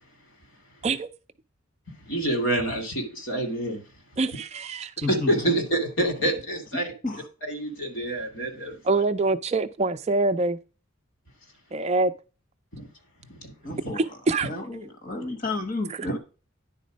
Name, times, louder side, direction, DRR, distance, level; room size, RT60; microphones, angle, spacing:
voice 1, 2.1-3.8 5.1-6.9 7.5-9.0 12.7-12.9 13.3-13.9 16.1-16.2, right 1 dB, 60° left, 2.5 m, -27 dB
voice 2, 4.2-5.1 8.8-10.6 11.7-12.1 13.9-14.5, right 3 dB, 30° right, 0.4 m, -25 dB
voice 3, 5.0-5.3 6.2-6.3 7.0-7.3 13.6-14.2 14.4-16.2, left 2 dB, 40° left, 1.3 m, -32 dB
10.0 x 4.2 x 5.1 m
head